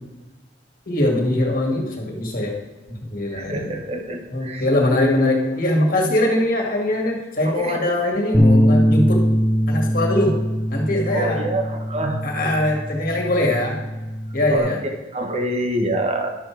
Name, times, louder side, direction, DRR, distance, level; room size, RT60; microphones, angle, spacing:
voice 1, 0.9-2.5 2.9-3.7 4.3-9.3 9.7-10.4 10.7-11.4 12.2-13.8 14.3-14.8, left 1 dB, 50° left, 0 dB, 1.9 m, -21 dB
voice 2, 3.3-4.6 7.5-7.8 11.1-12.2 14.5-14.7 15.1-16.4, right 1 dB, 35° right, 4 dB, 1.1 m, -26 dB
Bass guitar, 8.3-14.6, equal, ahead, 0.9 m, -21 dB
11.0 x 6.5 x 4.5 m, 1.1 s
head